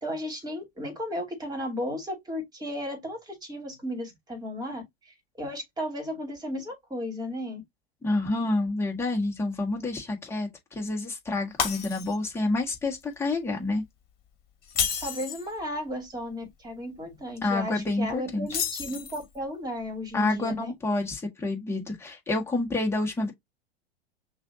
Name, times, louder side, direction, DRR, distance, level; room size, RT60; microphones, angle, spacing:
voice 1, 0.0-7.6 15.0-20.7, left 1 dB, 10° right, 2.4 m, -34 dB
voice 2, 8.0-13.8 17.4-18.6 20.1-23.3, left 2 dB, 10° left, 1.6 m, -28 dB
Shatter, 11.6-12.4 12.8-13.0 14.6-15.5 18.5-19.4, left 7 dB, 30° left, 2.4 m, -30 dB
6.0 x 2.7 x 2.7 m
hypercardioid pair, 100°, 33 cm